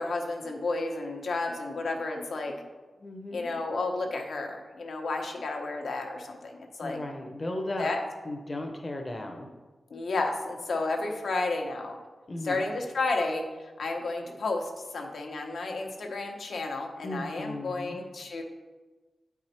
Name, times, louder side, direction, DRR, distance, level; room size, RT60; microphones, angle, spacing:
voice 1, 0.0-2.5 3.3-7.0 7.8-8.0 9.9-12.0 12.4-13.4 13.8-18.4, left 3 dB, 75° left, 2 dB, 1.1 m, -32 dB
voice 2, 3.0-3.5 6.8-7.9 8.2-9.5 12.3-12.7 17.0-18.1, left 1 dB, 30° left, 2 dB, 0.7 m, -36 dB
9.1 x 4.7 x 4.4 m, 1.3 s
wide cardioid pair, 145°, 0 cm